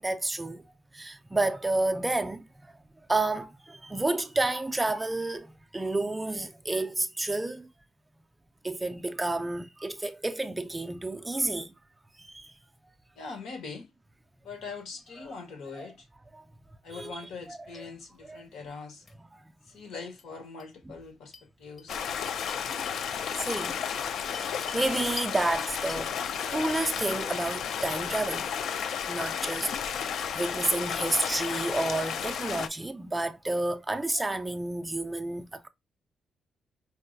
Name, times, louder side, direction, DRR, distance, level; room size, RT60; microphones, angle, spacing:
voice 1, 0.0-2.7 3.1-7.7 8.6-11.7 12.2-12.5 15.8-15.9 16.3-16.4 16.9-17.2 17.5-17.6 18.3-18.4 22.9-23.7 24.2-24.5 24.7-26.2 26.5-28.5 29.1-29.7 30.0-35.7, right 2 dB, 10° right, 0.3 m, -30 dB
voice 2, 13.2-13.9 14.4-16.1 16.8-19.1 19.7-22.1 23.3-23.6, left 4 dB, 85° left, 1.2 m, -42 dB
sound 1, 17.2-17.4 17.7-17.8 19.1-19.2 20.2-20.3 20.6-20.7 21.3-21.5 21.8-21.9 22.5-23.0 23.6-24.9 25.2-25.4 25.9-27.2 27.4-28.5 28.9-29.8, left 4 dB, 35° left, 0.6 m, -47 dB
Stream, 21.9-32.7, left 8 dB, 70° left, 0.3 m, -32 dB
4.5 x 2.0 x 2.6 m
cardioid pair, 145°, 0 cm